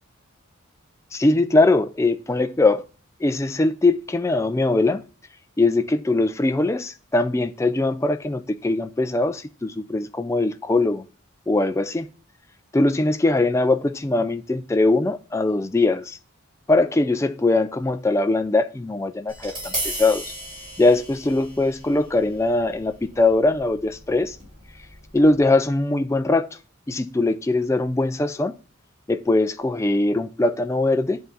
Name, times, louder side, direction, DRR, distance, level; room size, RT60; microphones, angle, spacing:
voice 1, 1.1-2.8 3.2-5.0 5.6-11.1 11.5-12.1 12.7-16.2 16.7-20.3 20.8-24.4 25.1-26.5 26.9-28.5 29.1-31.2, left 2 dB, 15° left, 0.3 m, -21 dB
Tap, 19.3-25.4, right 1 dB, 25° right, 4.0 m, -36 dB
8.1 x 3.8 x 6.7 m
head